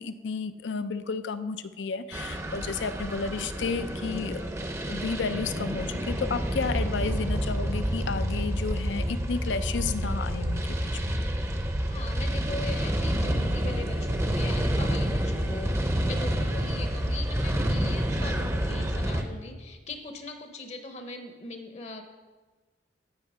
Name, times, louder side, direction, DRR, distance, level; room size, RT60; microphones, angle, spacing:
voice 1, 0.0-4.5 4.9-10.9, left 4 dB, 80° left, 12 dB, 0.5 m, -32 dB
sound 1, 2.1-19.2, equal, 15° right, 0.6 m, -28 dB
voice 2, 11.9-22.0, left 3 dB, 35° left, 6 dB, 0.7 m, -40 dB
13.5 x 5.4 x 4.9 m, 1.3 s
head